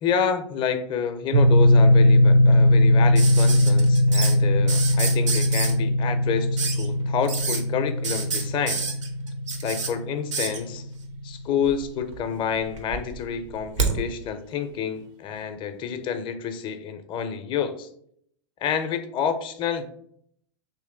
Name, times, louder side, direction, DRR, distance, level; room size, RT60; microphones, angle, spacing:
voice 1, 0.0-8.9 9.6-10.8 11.2-17.9 18.6-19.9, left 7 dB, 30° left, 8 dB, 0.5 m, -28 dB
sound 1, 1.3-11.2, left 1 dB, 50° right, 0.5 m, -20 dB
sound 2, 3.1-4.3 4.7-5.7 6.6-6.8 7.2-7.6 8.0-9.9 10.3-10.6 11.6-12.2 12.5-13.9 15.3-15.4, right 5 dB, 85° right, 0.9 m, -28 dB
3.1 x 3.1 x 3.7 m, 0.66 s
hypercardioid pair, 110°, 16 cm